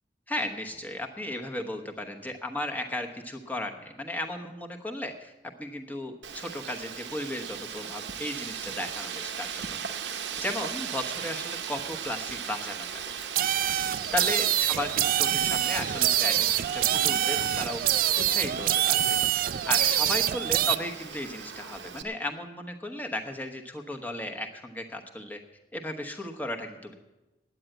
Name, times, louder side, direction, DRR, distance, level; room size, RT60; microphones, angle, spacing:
voice 1, 0.3-5.3 5.6-9.6 10.1-13.2 14.1-17.8 18.2-25.4 25.7-26.9, left 1 dB, 10° left, 3 dB, 1.0 m, -35 dB
Wind, 6.2-22.0, right 7 dB, 90° right, 0.8 m, -38 dB
sound 1, 13.4-20.8, right 12 dB, 50° right, 0.3 m, -25 dB
9.5 x 8.9 x 9.1 m, 1.0 s
head